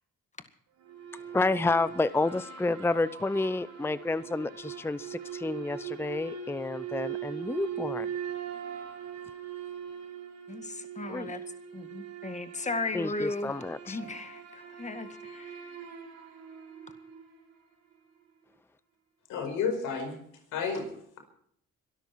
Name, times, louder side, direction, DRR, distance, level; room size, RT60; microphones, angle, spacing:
sound 1, 0.8-17.4, right 8 dB, 75° right, 6.3 m, -41 dB
voice 1, 1.3-8.1 11.1-11.3 12.9-14.0, left 3 dB, 10° left, 16 dB, 0.6 m, -30 dB
voice 2, 10.5-11.4 11.7-13.5 13.9-15.7, left 3 dB, 25° left, 8 dB, 2.1 m, -36 dB
voice 3, 19.3-20.2 20.5-20.9, left 5 dB, 90° left, 6 dB, 5.2 m, -30 dB
23.0 x 13.0 x 4.7 m, 0.68 s
cardioid pair, 90°, 30 cm